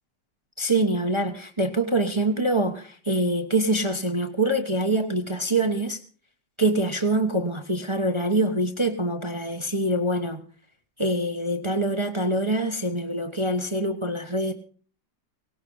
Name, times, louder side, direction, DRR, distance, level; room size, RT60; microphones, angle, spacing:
voice 1, 0.6-6.0 6.6-10.4 11.0-14.5, right 1 dB, 20° right, 1.0 m, -25 dB
18.0 x 17.5 x 3.9 m
omnidirectional pair, 2.0 m